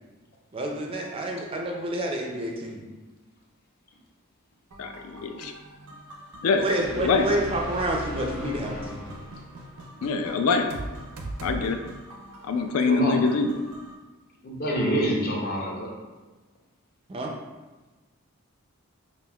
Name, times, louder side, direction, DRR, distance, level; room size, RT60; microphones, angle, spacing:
voice 1, 0.5-2.9 6.6-9.1 17.1-17.3, right 1 dB, 25° right, 1 dB, 0.3 m, -29 dB
sound 1, 4.7-13.9, right 1 dB, 85° right, 0.5 m, -42 dB
voice 2, 4.8-5.5 6.4-7.3 10.0-10.7 11.4-11.8 12.4-13.5, left 4 dB, 80° left, 7 dB, 0.3 m, -24 dB
sound 2, 6.8-9.7, left 1 dB, 60° left, 1.0 m, -37 dB
voice 3, 12.8-13.2 14.4-15.9, right 1 dB, 45° left, -2 dB, 0.7 m, -26 dB
5.2 x 2.5 x 2.3 m, 1.2 s
head